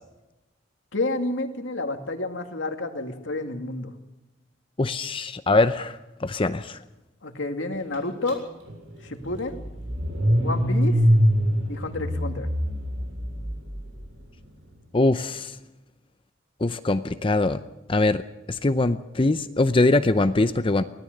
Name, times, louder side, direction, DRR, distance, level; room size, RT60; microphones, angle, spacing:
voice 1, 0.9-3.9 7.2-8.4 9.0-9.6 10.4-11.0 11.7-12.5, left 2 dB, 90° left, 5 dB, 2.2 m, -29 dB
voice 2, 4.8-6.8 14.9-15.6 16.6-17.6 17.9-18.2 18.5-20.8, left 2 dB, 30° left, 11 dB, 0.6 m, -22 dB
Car / Engine starting, 8.3-8.4 8.7-13.9, equal, 90° right, 7.3 m, -24 dB
24.0 x 17.5 x 6.6 m, 1.0 s
head